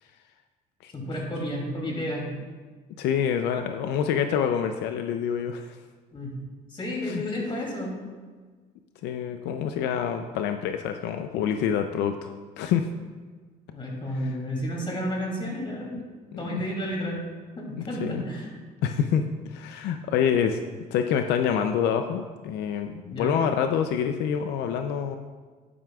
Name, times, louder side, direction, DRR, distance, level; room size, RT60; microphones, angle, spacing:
voice 1, 0.9-2.3 6.1-6.3 6.7-7.9 13.7-16.0 16.4-17.3 17.6-18.5 23.1-23.4, equal, 30° left, -1 dB, 2.7 m, -31 dB
voice 2, 3.0-5.8 7.1-7.2 9.0-12.3 12.6-12.9 14.1-14.3 15.9-16.0 16.3-16.6 17.8-18.2 18.8-20.6 20.9-25.2, left 8 dB, 85° left, 7 dB, 0.5 m, -27 dB
11.0 x 10.0 x 2.4 m, 1.5 s
cardioid pair, 110°, 17 cm